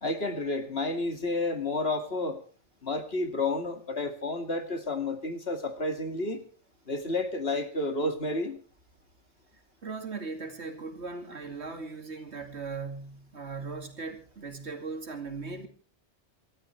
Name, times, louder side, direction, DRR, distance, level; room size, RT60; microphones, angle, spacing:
voice 1, 0.0-2.4 2.8-6.4 6.9-8.6, left 2 dB, 55° left, 2.5 m, -30 dB
voice 2, 9.8-15.7, right 4 dB, 65° right, 2.7 m, -38 dB
28.0 x 13.0 x 3.3 m
omnidirectional pair, 1.2 m